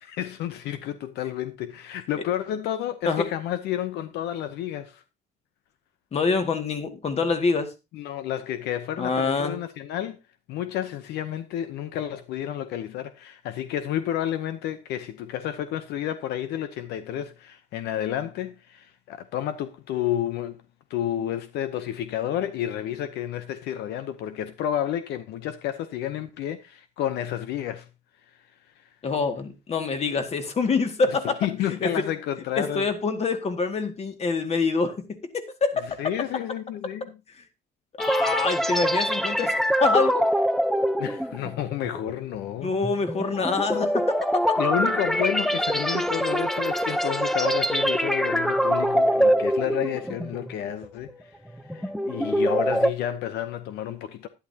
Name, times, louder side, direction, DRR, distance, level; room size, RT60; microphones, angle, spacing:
voice 1, 0.0-5.0 7.9-10.2 10.5-20.6 20.9-27.9 28.8-28.9 31.2-32.9 36.0-37.2 41.0-42.7 44.6-51.4 51.7-54.3, left 11 dB, 80° left, 0.8 m, -30 dB
voice 2, 6.1-7.7 9.0-9.6 29.0-31.3 31.7-31.9 32.6-34.9 35.3-35.8 38.0-39.5 39.8-40.3 42.6-44.1, left 4 dB, 40° left, 2.1 m, -25 dB
sound 1, 38.0-50.5 50.8-51.1 51.6-52.9, equal, ahead, 0.7 m, -24 dB
11.5 x 11.0 x 2.8 m
cardioid pair, 110°, 17 cm